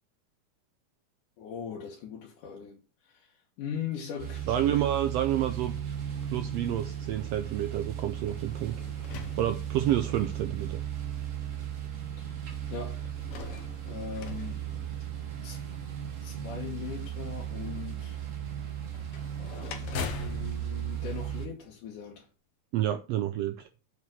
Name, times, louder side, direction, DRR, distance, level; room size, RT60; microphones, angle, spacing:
voice 1, 1.4-4.5 12.2-12.4 12.7-13.1 13.9-14.9 15.4-15.7 16.2-18.2 20.0-22.3, left 8 dB, 85° left, 2.8 m, -40 dB
sound 1, 4.2-21.5, right 10 dB, 50° right, 0.9 m, -36 dB
voice 2, 4.5-5.7 6.2-8.8 9.4-10.8 22.7-23.7, right 12 dB, 90° right, 1.4 m, -29 dB
sound 2, 8.3-10.2 11.0-11.1 12.9-15.5 18.9-22.0, left 6 dB, 65° left, 1.6 m, -42 dB
7.3 x 4.7 x 6.1 m
omnidirectional pair, 3.5 m